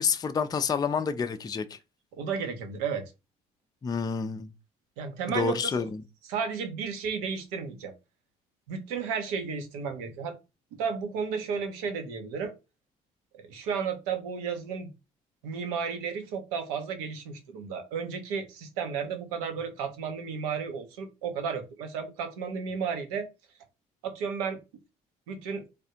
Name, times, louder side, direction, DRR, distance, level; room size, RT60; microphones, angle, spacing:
voice 1, 0.0-1.8 3.8-4.5 5.3-5.9, left 6 dB, 20° left, 0.4 m, -28 dB
voice 2, 2.1-3.1 5.0-5.9 6.2-7.9 8.7-10.3 10.7-12.5 13.3-14.9 15.4-23.3 24.0-24.6 25.3-25.6, right 6 dB, 80° right, 0.7 m, -33 dB
3.4 x 2.3 x 2.8 m
hypercardioid pair, 55°, 19 cm